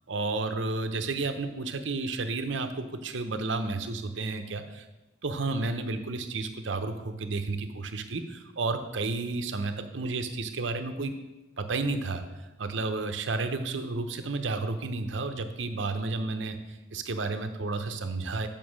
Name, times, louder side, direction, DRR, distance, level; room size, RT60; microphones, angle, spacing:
voice 1, 0.1-4.9 5.2-11.1 11.6-12.2 12.6-18.5, right 3 dB, 80° right, 8 dB, 0.8 m, -31 dB
7.4 x 5.3 x 6.4 m, 1.1 s
head